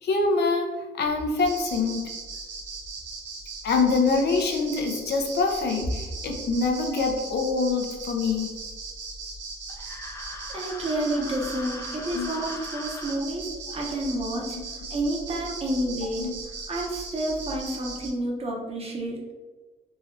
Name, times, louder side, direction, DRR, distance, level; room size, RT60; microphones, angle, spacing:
voice 1, 0.0-2.1 3.6-8.5 12.1-12.3 14.5-14.6 16.2-16.3, left 4 dB, 60° left, 3 dB, 0.7 m, -25 dB
sound 1, 1.4-18.1, right 3 dB, 75° right, 0.9 m, -38 dB
sound 2, 9.7-13.2, left 2 dB, 15° left, 0.5 m, -40 dB
voice 2, 10.5-14.6 14.9-16.3 16.7-19.2, right 1 dB, 30° right, -1 dB, 0.9 m, -29 dB
3.9 x 3.0 x 2.7 m, 1.3 s
cardioid pair, 115°, 19 cm